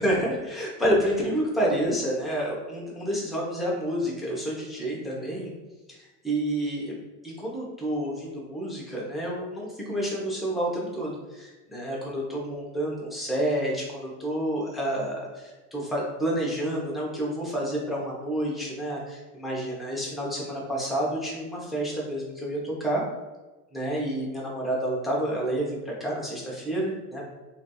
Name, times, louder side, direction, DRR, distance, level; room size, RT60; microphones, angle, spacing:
voice 1, 0.0-5.5 5.9-6.0 6.2-6.9 7.2-23.0 23.7-27.3, right 1 dB, ahead, -5 dB, 0.7 m, -29 dB
3.2 x 2.7 x 2.2 m, 1.2 s
hypercardioid pair, 105°, 46 cm